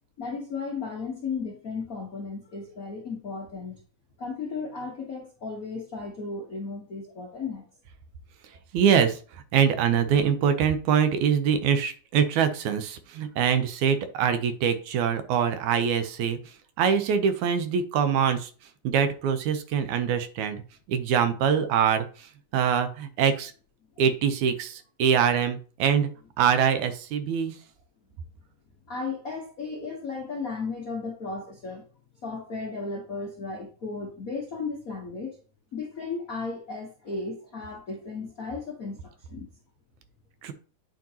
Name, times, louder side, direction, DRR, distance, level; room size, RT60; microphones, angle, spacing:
voice 1, 0.2-3.7 4.2-7.6 28.9-31.9 32.2-35.4 35.7-39.5, left 4 dB, 80° left, 0.7 m, -35 dB
voice 2, 8.7-9.2 9.5-16.4 16.8-18.5 18.8-20.6 20.9-22.3 22.5-23.5 24.0-26.1 26.4-27.6 40.4-40.5, right 7 dB, 75° right, 2.1 m, -24 dB
9.0 x 5.2 x 2.8 m
omnidirectional pair, 3.5 m